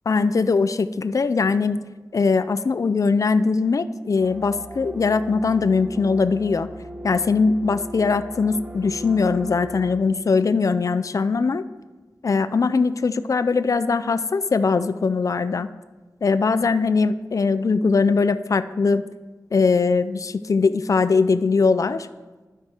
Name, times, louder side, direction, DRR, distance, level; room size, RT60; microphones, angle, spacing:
voice 1, 0.1-1.8 2.1-6.7 7.0-11.6 12.2-15.7 16.2-19.1 19.5-22.1, left 4 dB, 55° left, 13 dB, 0.3 m, -21 dB
sound 1, 4.2-9.9, right 1 dB, 25° right, 0.8 m, -39 dB
12.0 x 4.7 x 4.3 m, 1.2 s
wide cardioid pair, 65°, 7 cm